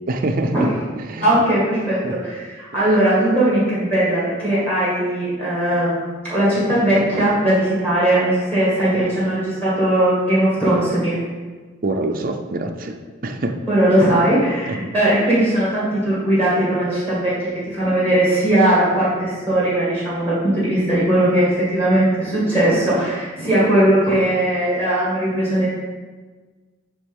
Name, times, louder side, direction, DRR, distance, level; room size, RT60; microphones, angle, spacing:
voice 1, 0.1-0.7 1.0-1.3 2.0-2.2 11.8-13.6 14.7-14.8, right 2 dB, 45° right, 4 dB, 0.5 m, -25 dB
voice 2, 1.2-11.2 13.7-25.7, right 1 dB, 10° left, -8 dB, 2.1 m, -19 dB
8.4 x 3.6 x 5.4 m, 1.4 s
head